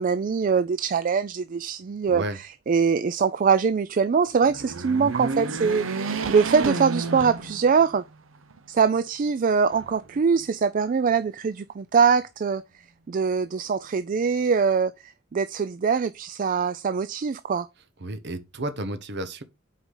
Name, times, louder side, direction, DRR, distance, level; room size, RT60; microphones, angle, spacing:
voice 1, 0.0-2.2 2.7-8.0 8.7-12.6 13.1-17.7, right 5 dB, 40° right, 0.4 m, -23 dB
voice 2, 2.1-2.4 18.0-19.4, right 1 dB, 60° right, 1.0 m, -32 dB
sound 1, 4.4-8.0 8.5-8.6 9.7-10.5, right 3 dB, 85° right, 0.9 m, -31 dB
8.2 x 4.8 x 3.8 m
head